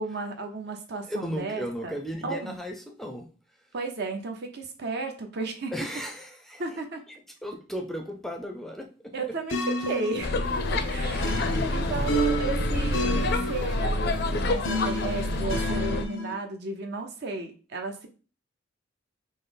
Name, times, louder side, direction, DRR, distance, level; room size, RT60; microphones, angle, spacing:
voice 1, 0.0-1.9 2.2-2.6 3.7-5.7 6.6-7.0 9.1-18.1, right 3 dB, 60° right, 4 dB, 0.8 m, -34 dB
voice 2, 1.1-3.3 5.7-6.6 7.4-9.1 10.7-10.8, equal, ahead, 3 dB, 0.5 m, -35 dB
sound 1, 9.5-16.4, equal, 90° left, 0.7 m, -31 dB
sound 2, 10.2-16.0, left 2 dB, 55° left, 0.5 m, -27 dB
sound 3, 10.4-15.5, equal, 85° right, 1.7 m, -46 dB
5.3 x 2.0 x 3.9 m, 0.36 s
head